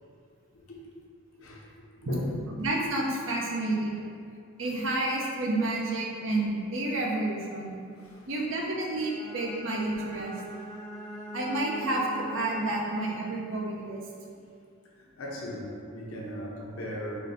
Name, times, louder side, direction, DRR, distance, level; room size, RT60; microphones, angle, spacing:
voice 1, 2.6-4.0 4.6-7.8 8.3-10.4 11.3-14.0, right 2 dB, 60° right, -1 dB, 0.6 m, -30 dB
voice 2, 7.9-8.2 15.2-17.2, left 1 dB, 80° left, -2 dB, 0.7 m, -37 dB
Bowed string instrument, 8.9-13.4, right 1 dB, ahead, 0.6 m, -42 dB
3.8 x 2.6 x 4.0 m, 2.3 s
head